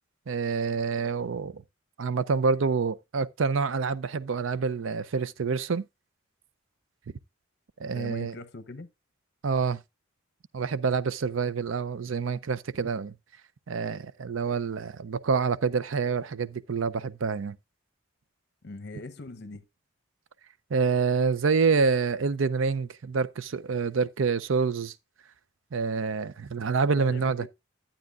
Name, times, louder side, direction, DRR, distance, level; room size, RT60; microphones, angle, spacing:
voice 1, 0.3-1.6 2.0-5.8 7.8-8.3 9.4-9.8 10.5-13.1 13.7-17.6 20.7-24.9 25.7-27.5, right 5 dB, 75° right, 0.5 m, -27 dB
voice 2, 7.9-8.9 18.6-19.6 27.0-27.5, left 2 dB, 55° left, 0.9 m, -41 dB
12.0 x 8.8 x 2.4 m
head